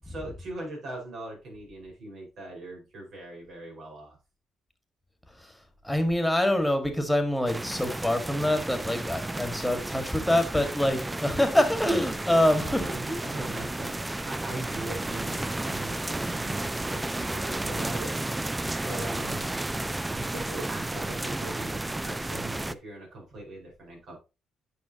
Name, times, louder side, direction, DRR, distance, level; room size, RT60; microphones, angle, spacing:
voice 1, 0.0-4.2 10.5-10.8 12.3-14.0 14.2-19.5 20.1-24.2, right 2 dB, 65° right, -1 dB, 5.2 m, -41 dB
voice 2, 5.8-12.8, left 1 dB, 5° left, 6 dB, 1.8 m, -25 dB
sound 1, 7.5-22.7, right 2 dB, 15° right, 0.4 m, -32 dB
9.5 x 5.9 x 2.9 m, 0.28 s
cardioid pair, 90°, 0 cm